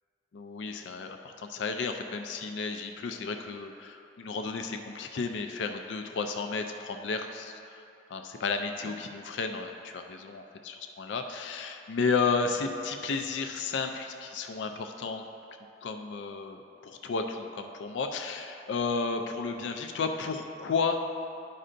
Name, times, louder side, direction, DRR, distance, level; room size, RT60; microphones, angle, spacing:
voice 1, 0.3-7.8 8.1-15.2 15.8-21.2, left 4 dB, 75° left, 5 dB, 0.4 m, -33 dB
11.0 x 5.4 x 2.5 m, 2.7 s
head